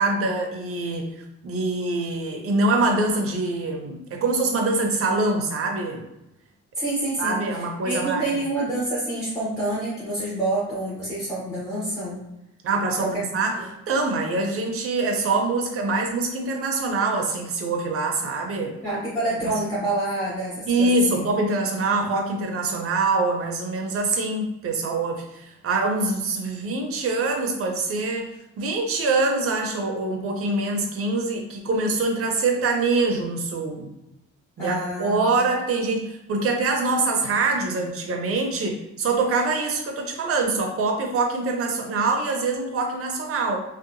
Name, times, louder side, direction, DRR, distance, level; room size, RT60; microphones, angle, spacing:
voice 1, 0.0-6.1 7.2-8.3 12.6-18.8 19.4-19.5 20.7-28.3 28.6-33.9 34.6-43.6, right 3 dB, 50° right, 2 dB, 0.6 m, -24 dB
voice 2, 6.8-7.4 7.8-12.2 13.0-13.3 13.6-13.7 18.8-21.2 34.6-35.5, right 2 dB, 10° left, -9 dB, 0.8 m, -27 dB
2.7 x 2.2 x 2.5 m, 0.89 s
cardioid pair, 125°, 30 cm